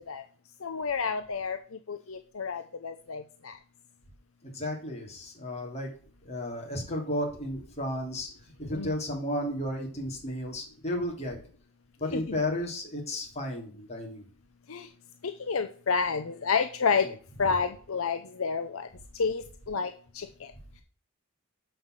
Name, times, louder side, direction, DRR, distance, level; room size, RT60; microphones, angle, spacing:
voice 1, 0.6-1.6 1.9-3.5 8.7-8.9 12.1-12.2 14.7-14.8 15.5-17.1 17.4-18.8 19.2-19.9 20.2-20.3, left 5 dB, 65° left, 8 dB, 0.7 m, -29 dB
voice 2, 4.5-5.9 6.2-8.3 8.6-11.4 12.0-14.2 17.0-17.1, left 1 dB, 30° left, 0 dB, 3.4 m, -33 dB
7.8 x 5.6 x 6.4 m, 0.43 s
head